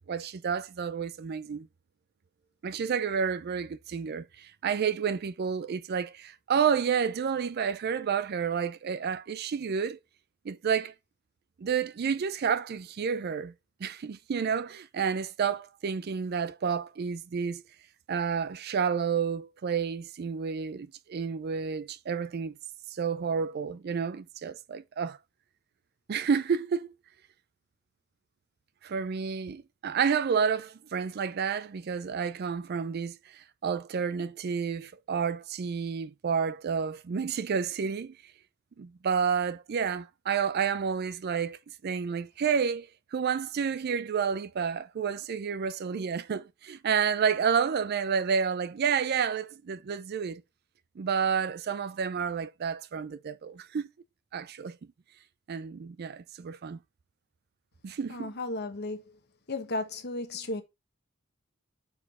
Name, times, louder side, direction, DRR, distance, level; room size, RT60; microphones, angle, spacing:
voice 1, 0.1-1.7 2.6-10.0 10.4-10.9 11.6-13.5 13.8-17.6 18.1-22.5 22.9-25.2 26.1-26.9 28.8-38.2 38.8-41.6 41.8-50.4 51.0-53.9 54.3-54.8 55.5-56.8 57.8-58.3, right 6 dB, 50° right, 0.4 m, -30 dB
voice 2, 58.1-59.2 59.5-60.6, left 2 dB, 55° left, 1.1 m, -34 dB
6.4 x 4.7 x 3.6 m
head